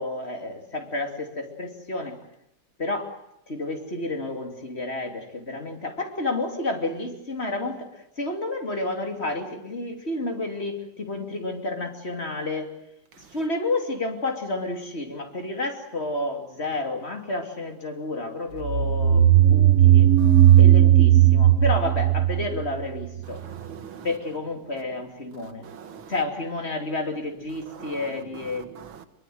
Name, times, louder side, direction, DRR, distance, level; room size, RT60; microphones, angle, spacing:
voice 1, 0.0-2.1 2.8-3.1 3.5-7.9 8.2-12.7 13.3-20.1 20.6-23.4 24.0-25.7 26.1-28.7, left 2 dB, 30° left, 3.2 m, -30 dB
sound 1, 18.7-23.2, right 12 dB, 45° right, 1.4 m, -16 dB
voice 2, 20.2-20.6 23.3-24.1 25.6-26.1 27.8-28.0 28.8-29.1, right 7 dB, 90° right, 2.3 m, -42 dB
24.5 x 22.5 x 7.9 m
omnidirectional pair, 2.1 m